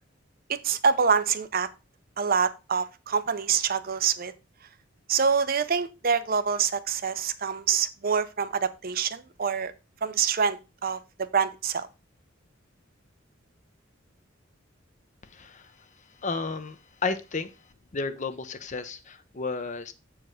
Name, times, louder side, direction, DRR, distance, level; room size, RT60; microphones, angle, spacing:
voice 1, 0.6-1.7 2.2-4.3 5.1-9.7 10.0-11.9, right 6 dB, 50° right, 0.6 m, -26 dB
voice 2, 15.3-15.7 16.2-17.5 17.9-19.9, left 4 dB, 40° left, 0.7 m, -32 dB
7.8 x 4.7 x 4.8 m
head